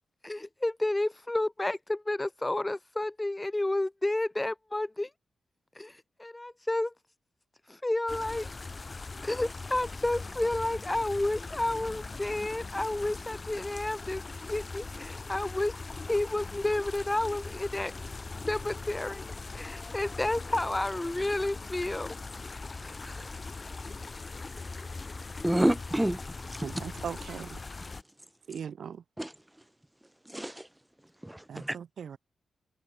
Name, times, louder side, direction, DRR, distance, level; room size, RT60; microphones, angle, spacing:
voice 1, 0.2-5.1 5.7-6.9 7.7-8.5 9.2-14.2 14.5-15.8 16.1-17.9 18.5-19.3 19.5-22.2 22.8-23.3, left 2 dB, 15° left, 1.2 m, -31 dB
sound 1, 8.1-28.0, left 3 dB, 35° left, 3.1 m, -41 dB
voice 2, 25.4-26.2 26.5-26.7 29.2-29.3 30.3-30.7 31.2-31.8, right 1 dB, 10° right, 0.9 m, -28 dB
voice 3, 26.6-27.6 28.5-29.0 31.5-32.2, right 7 dB, 75° right, 7.6 m, -39 dB
cardioid pair, 85°, 0 cm